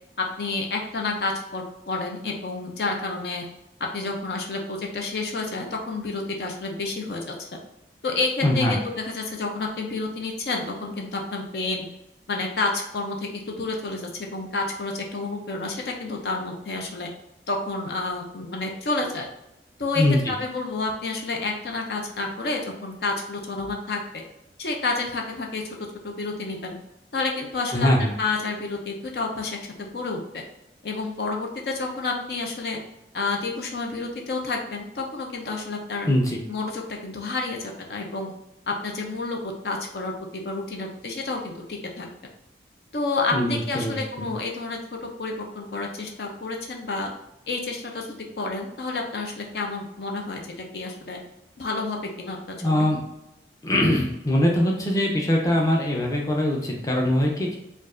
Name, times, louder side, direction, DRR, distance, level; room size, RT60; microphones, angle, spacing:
voice 1, 0.2-3.4 3.8-7.5 8.0-11.9 12.3-17.1 17.5-19.3 19.8-24.0 24.6-25.6 26.0-26.8 27.1-27.9 28.2-30.4 30.8-32.8 33.1-36.1 36.5-38.3 38.7-42.1 42.9-47.1 47.5-50.4 50.7-51.2 51.6-52.9, left 3 dB, 65° left, 1 dB, 0.5 m, -30 dB
voice 2, 8.4-8.8 20.0-20.2 27.7-28.1 36.1-36.4 43.3-44.3 52.6-53.0 53.6-57.6, left 1 dB, 20° left, -1 dB, 0.6 m, -22 dB
4.4 x 2.4 x 2.5 m, 0.88 s
head